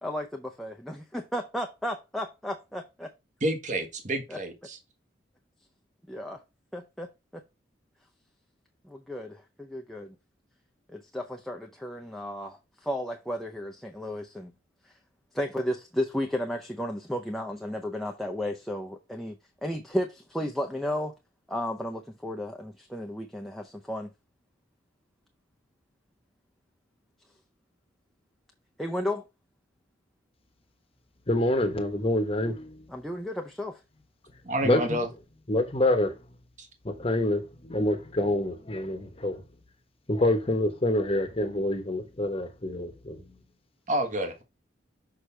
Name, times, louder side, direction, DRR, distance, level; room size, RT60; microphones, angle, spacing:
voice 1, 0.0-3.1 4.3-4.4 6.1-6.4 6.7-7.4 8.8-10.2 10.9-14.5 14.8-14.9 15.3-19.4 19.6-21.1 21.5-24.1 28.8-29.2 32.9-33.8, left 1 dB, ahead, 0.6 m, -33 dB
voice 2, 3.4-4.8 34.4-35.1 36.6-36.7 43.9-44.4, right 1 dB, 40° right, 1.3 m, -29 dB
voice 3, 31.3-32.8 34.6-35.0 35.5-36.2 36.8-39.4 40.1-43.3, left 1 dB, 30° left, 1.0 m, -27 dB
6.5 x 5.6 x 3.3 m
head